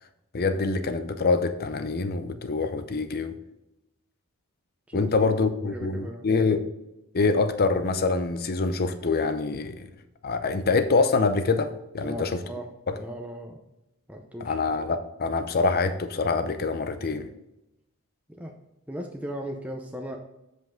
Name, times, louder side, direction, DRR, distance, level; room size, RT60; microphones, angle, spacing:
voice 1, 0.3-3.3 4.9-6.7 7.1-9.9 10.2-12.4 12.9-13.0 14.4-17.3, left 4 dB, 45° left, 0.6 m, -25 dB
voice 2, 4.9-6.3 12.0-12.7 12.9-13.6 14.1-14.6 18.3-18.5 18.9-20.2, equal, 5° right, 0.6 m, -37 dB
7.9 x 5.3 x 3.7 m
head